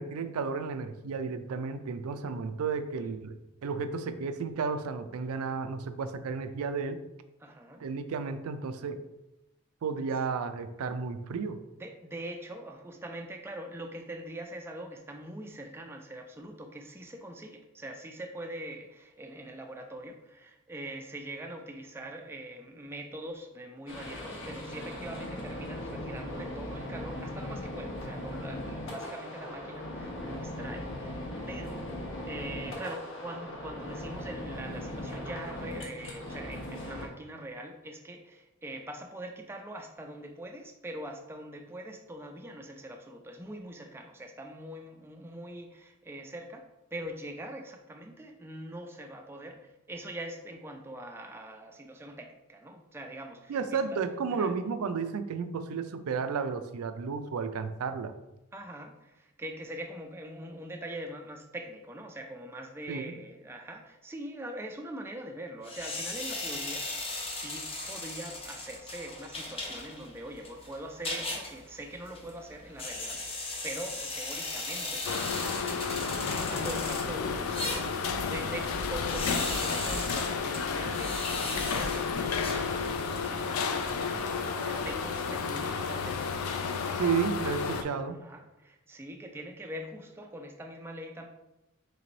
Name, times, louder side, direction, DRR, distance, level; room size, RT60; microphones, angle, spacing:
voice 1, 0.0-3.4 3.6-7.0 7.8-9.0 9.8-11.6 53.5-58.1 62.9-63.1 87.0-88.2, right 5 dB, 85° right, 10 dB, 0.4 m, -32 dB
voice 2, 7.4-7.9 11.7-32.0 32.3-46.7 46.9-54.0 54.3-54.5 58.5-86.3 88.0-91.3, right 1 dB, 10° right, 3 dB, 0.3 m, -43 dB
sound 1, 23.9-37.1, left 1 dB, 60° left, 0.8 m, -39 dB
sound 2, 65.6-83.1, left 2 dB, 25° left, 0.6 m, -38 dB
sound 3, 75.0-87.8, left 5 dB, 75° left, 0.4 m, -32 dB
3.3 x 3.1 x 3.9 m, 0.95 s
head